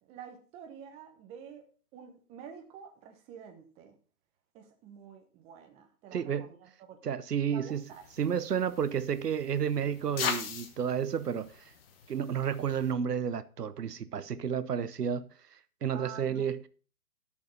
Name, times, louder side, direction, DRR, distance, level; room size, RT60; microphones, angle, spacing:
voice 1, 0.0-1.6 1.9-4.0 4.5-7.2 7.4-8.0 15.9-16.7, right 7 dB, 15° right, 1.0 m, -49 dB
voice 2, 6.1-6.5 7.0-7.8 8.2-11.6 12.1-15.2 15.8-16.6, right 8 dB, 90° right, 1.0 m, -31 dB
sound 1, 7.8-12.9, left 6 dB, 40° left, 1.4 m, -40 dB
11.0 x 6.6 x 5.3 m
hypercardioid pair, 150°, 46 cm